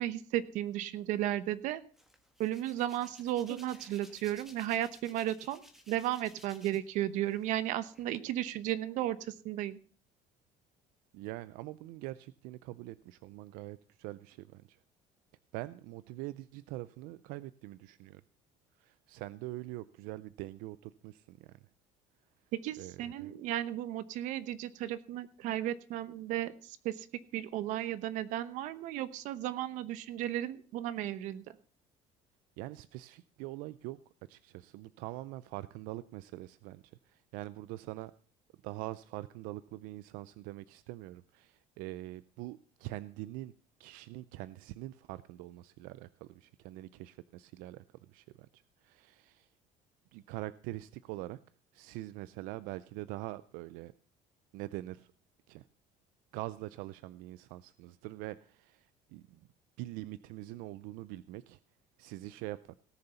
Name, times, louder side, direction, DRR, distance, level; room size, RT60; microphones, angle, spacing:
voice 1, 0.0-1.8 2.4-5.6 5.9-9.8 22.5-27.1 27.3-31.6, right 13 dB, 60° right, 14 dB, 1.0 m, -34 dB
Hands, 1.9-6.9 7.3-8.2, equal, ahead, 1.4 m, -56 dB
voice 2, 11.1-14.8 15.5-18.2 18.8-21.6 22.8-23.3 32.6-34.0 34.3-38.1 38.6-43.5 43.8-49.5 50.1-51.4 51.7-53.9 54.5-55.1 55.5-55.7 56.3-59.4 59.8-61.6 62.0-62.8, right 17 dB, 85° right, 17 dB, 0.5 m, -44 dB
17.5 x 6.8 x 5.5 m, 0.42 s
cardioid pair, 175°, 14 cm